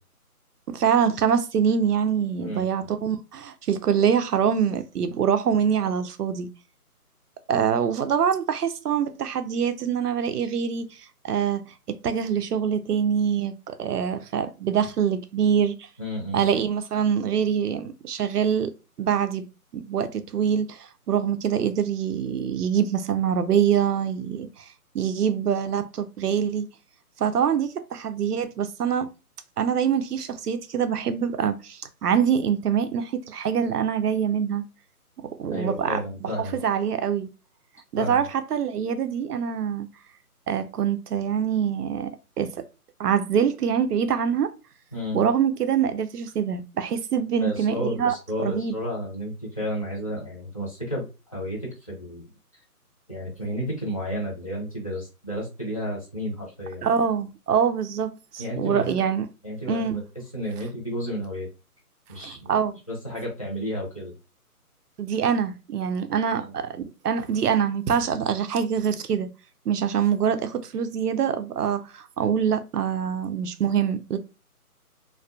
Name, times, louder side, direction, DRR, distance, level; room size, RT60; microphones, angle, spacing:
voice 1, 0.7-6.5 7.5-10.9 11.2-11.6 11.9-15.9 16.3-18.7 19.0-19.4 19.7-24.7 24.9-26.7 27.2-29.1 29.6-34.6 35.4-36.0 36.4-37.3 37.9-39.9 40.5-42.7 43.0-44.5 45.1-48.8 56.8-59.3 59.7-60.0 62.2-62.8 65.0-69.3 69.7-74.2, right 8 dB, 85° right, 0.5 m, -24 dB
voice 2, 16.0-16.4 35.5-36.6 38.0-38.3 44.9-45.2 47.4-52.3 53.1-56.9 58.4-59.0 59.4-60.0 60.3-61.5 62.1-62.5 62.9-64.1 66.3-66.5, equal, 25° left, 0.6 m, -32 dB
2.3 x 2.2 x 2.4 m
figure-of-eight pair, 155°, 46 cm